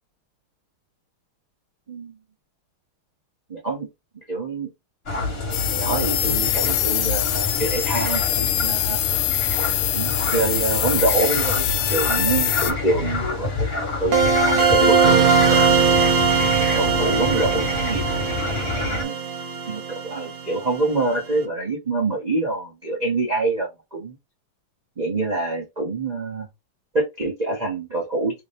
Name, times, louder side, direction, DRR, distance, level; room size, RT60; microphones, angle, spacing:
voice 1, 3.5-3.9 4.3-4.7 5.7-9.0 9.9-16.1 16.7-18.0 18.7-19.1 19.7-24.2 25.0-26.5 26.9-28.4, right 3 dB, 90° right, 0.3 m, -26 dB
sound 1, 5.1-19.0, left 3 dB, 35° left, 1.2 m, -27 dB
sound 2, 5.5-12.7, left 13 dB, 75° left, 1.3 m, -24 dB
sound 3, 14.1-20.8, right 5 dB, 55° right, 1.2 m, -20 dB
3.4 x 2.7 x 3.3 m
omnidirectional pair, 2.3 m